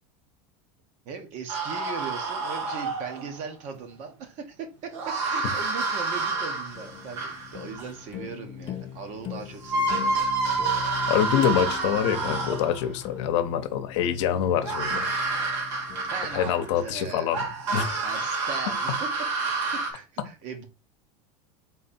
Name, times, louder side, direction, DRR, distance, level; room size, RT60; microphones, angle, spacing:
voice 1, 1.0-10.2 15.3-15.6 16.1-17.4 18.0-19.1 19.4-20.7, right 5 dB, 50° right, 1.1 m, -39 dB
sound 1, 1.5-3.4 4.9-7.9 9.2-9.3 9.6-12.9 14.6-16.7 17.3-19.9, right 3 dB, 85° right, 1.5 m, -28 dB
sound 2, 6.3-17.5, left 10 dB, 35° left, 0.5 m, -41 dB
voice 2, 11.1-15.1 16.3-17.4 17.7-18.0, left 9 dB, 70° left, 0.8 m, -25 dB
4.0 x 2.8 x 4.2 m
supercardioid pair, 130°, 16 cm